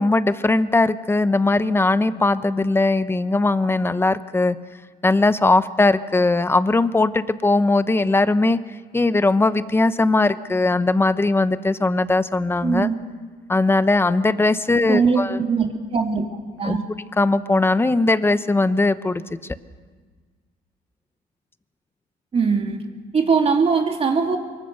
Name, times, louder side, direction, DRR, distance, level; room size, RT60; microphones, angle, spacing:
voice 1, 0.0-4.6 5.0-8.6 8.9-12.9 13.5-15.4 16.6-16.8 17.2-19.2, left 2 dB, 15° left, 13 dB, 0.9 m, -19 dB
voice 2, 12.6-12.9 14.9-15.7 15.9-16.2 16.6-16.8 22.3-22.8 23.1-24.4, right 5 dB, 35° right, 3 dB, 2.7 m, -20 dB
25.0 x 23.0 x 6.6 m, 1.5 s
cardioid pair, 110°, 17 cm